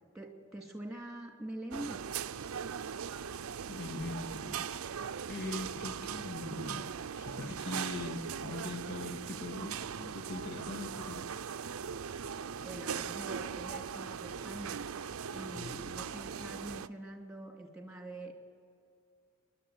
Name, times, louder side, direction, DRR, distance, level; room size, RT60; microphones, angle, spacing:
voice 1, 0.1-2.0 12.6-14.8 15.3-18.4, right 1 dB, ahead, 1 dB, 2.6 m, -44 dB
sound 1, 1.7-16.9, right 7 dB, 80° right, 0.6 m, -40 dB
voice 2, 3.7-4.7 5.3-11.2 11.7-11.8 15.5-16.0, left 2 dB, 55° left, 3 dB, 1.9 m, -42 dB
28.5 x 11.5 x 8.0 m, 2.4 s
head